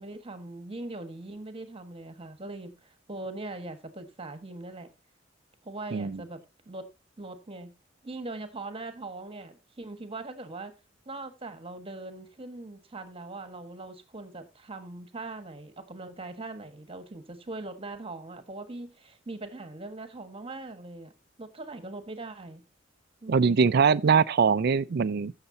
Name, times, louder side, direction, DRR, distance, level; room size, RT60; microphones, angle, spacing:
voice 1, 0.0-4.9 5.6-6.4 6.6-6.8 7.2-7.7 8.0-10.7 11.0-21.1 21.4-22.6 23.2-23.6, right 2 dB, 30° right, 1.5 m, -41 dB
voice 2, 23.3-25.3, right 5 dB, 55° right, 0.4 m, -22 dB
15.0 x 6.6 x 2.7 m
head